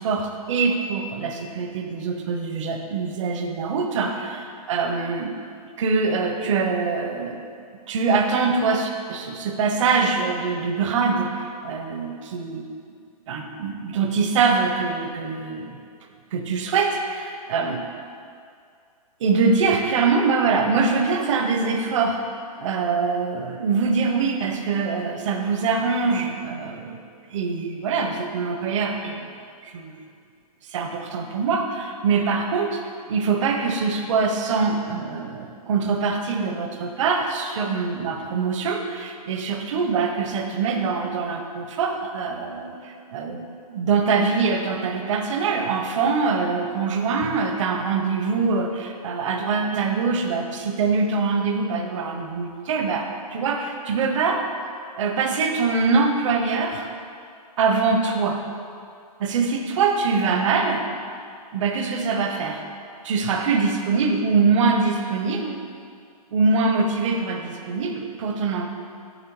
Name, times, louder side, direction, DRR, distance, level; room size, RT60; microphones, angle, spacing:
voice 1, 0.0-5.3 5.8-7.4 7.9-12.6 13.3-15.8 16.3-17.8 19.2-22.2 22.6-27.0 27.3-29.2 29.7-29.9 30.7-32.8 33.1-54.4 55.0-56.9 57.6-58.4 59.2-60.8 61.5-62.6 63.0-65.6 66.3-68.7, right 4 dB, 50° right, 4 dB, 0.7 m, -23 dB
6.7 x 3.4 x 4.5 m, 2.3 s
hypercardioid pair, 160°, 20 cm